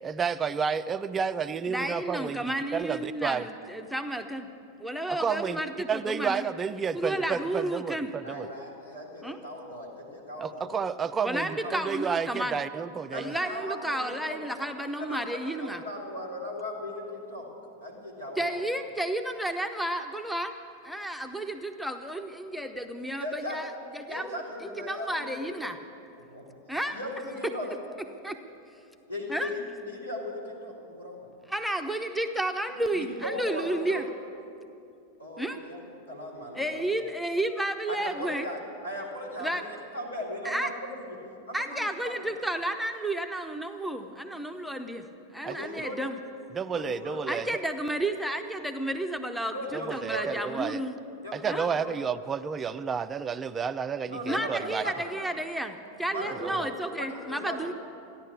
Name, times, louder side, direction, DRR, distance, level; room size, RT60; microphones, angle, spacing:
voice 1, 0.0-2.4 2.7-3.5 5.1-5.6 5.9-8.5 10.4-13.3 45.4-45.6 46.5-47.5 49.7-50.8 51.3-54.8 56.4-56.7, right 6 dB, 20° right, 13 dB, 0.4 m, -31 dB
voice 2, 1.7-4.5 4.8-6.4 6.9-8.1 9.2-9.4 11.2-12.6 13.1-15.8 18.4-20.5 20.8-24.3 24.6-25.8 26.7-27.0 28.2-28.4 29.3-29.5 31.5-34.1 35.4-35.6 36.5-38.5 39.4-39.6 40.4-40.7 41.5-45.1 45.3-46.2 47.3-50.9 51.5-51.7 54.3-57.7, right 1 dB, ahead, 5 dB, 0.7 m, -32 dB
voice 3, 8.2-10.7 11.6-11.7 13.1-14.4 15.0-15.2 15.6-17.5 17.8-18.6 23.2-23.6 24.1-25.7 26.2-26.4 26.9-27.8 29.1-31.3 32.7-34.0 35.2-36.9 37.9-41.2 41.5-42.3 45.5-46.0 46.7-47.2 49.5-50.3 51.2-52.0 54.0-55.1 56.1-57.6, left 1 dB, 80° left, -4 dB, 3.5 m, -38 dB
14.5 x 11.0 x 8.3 m, 2.6 s
figure-of-eight pair, 90°, 0 cm